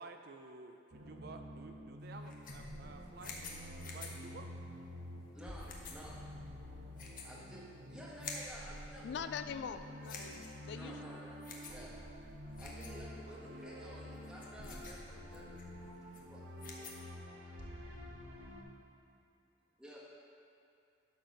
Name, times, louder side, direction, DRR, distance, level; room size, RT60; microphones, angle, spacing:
voice 1, 0.0-4.5 11.9-12.0, right 3 dB, 55° right, 5 dB, 0.5 m, -52 dB
sound 1, 0.9-18.6, equal, 85° right, 1.5 m, -49 dB
sound 2, 2.0-17.1, left 4 dB, 45° left, 1.1 m, -52 dB
voice 2, 5.3-6.2 7.2-9.2 10.7-11.4 11.7-11.9 12.6-16.4 19.8-20.0, equal, 5° right, -6 dB, 1.5 m, -53 dB
voice 3, 9.0-11.2, left 7 dB, 65° left, 10 dB, 0.3 m, -43 dB
12.0 x 4.5 x 5.2 m, 2.7 s
head